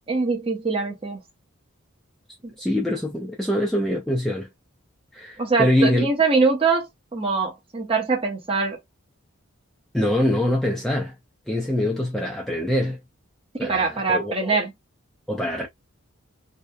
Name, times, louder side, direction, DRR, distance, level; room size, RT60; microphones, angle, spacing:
voice 1, 0.1-1.2 2.4-2.5 5.4-8.8 13.6-14.7, right 4 dB, 25° right, 0.7 m, -23 dB
voice 2, 2.6-4.5 5.1-6.1 9.9-11.2 11.5-13.0 13.6-14.6 15.3-15.7, left 1 dB, ahead, 0.4 m, -24 dB
2.7 x 2.1 x 2.2 m
head